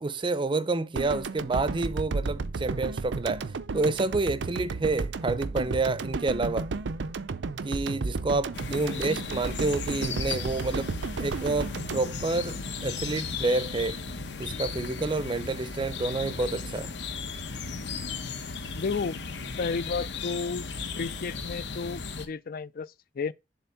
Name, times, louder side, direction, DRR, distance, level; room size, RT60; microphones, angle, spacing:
voice 1, 0.0-6.7 7.6-10.9 11.2-14.0 14.4-16.9, right 3 dB, 25° right, 0.5 m, -29 dB
sound 1, 1.0-13.2, right 4 dB, 80° right, 0.5 m, -33 dB
sound 2, 8.5-22.3, left 4 dB, 70° left, 1.0 m, -36 dB
voice 2, 8.8-9.2 18.7-19.2 19.6-20.7 20.9-23.3, left 4 dB, 55° left, 0.4 m, -32 dB
7.1 x 3.4 x 5.6 m
head